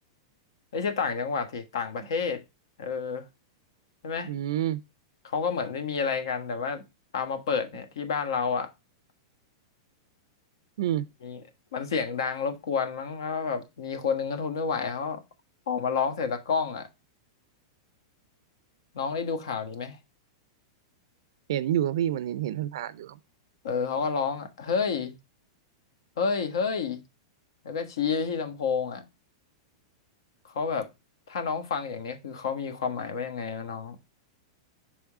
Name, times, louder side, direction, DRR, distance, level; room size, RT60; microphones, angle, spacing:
voice 1, 0.7-2.4 2.8-3.2 4.0-4.3 5.2-6.8 7.1-8.7 11.2-11.4 11.7-15.2 15.7-16.9 18.9-20.0 23.6-25.2 26.2-27.0 27.6-29.0 30.5-30.9 31.3-34.0, left 5 dB, 80° left, 1.4 m, -29 dB
voice 2, 4.2-4.8 10.8-11.0 21.5-23.2, right 11 dB, 65° right, 0.4 m, -28 dB
6.1 x 3.5 x 4.7 m
supercardioid pair, 165°, 2 cm